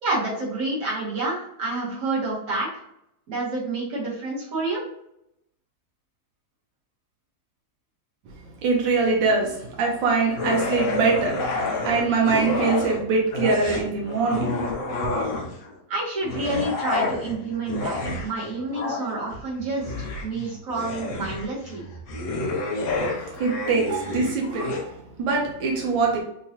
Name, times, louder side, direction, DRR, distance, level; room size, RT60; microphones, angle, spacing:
voice 1, 0.0-2.7 3.3-4.8 15.9-19.9 20.2-21.8, right 2 dB, 50° right, -6 dB, 1.7 m, -28 dB
voice 2, 8.6-11.5 11.8-14.6 15.0-15.1 23.1-26.2, right 4 dB, 85° right, -1 dB, 1.4 m, -23 dB
sound 1, 10.3-13.0 13.3-15.7 16.2-24.8, left 2 dB, 60° left, 0.9 m, -29 dB
3.9 x 2.8 x 2.8 m, 0.78 s
omnidirectional pair, 2.0 m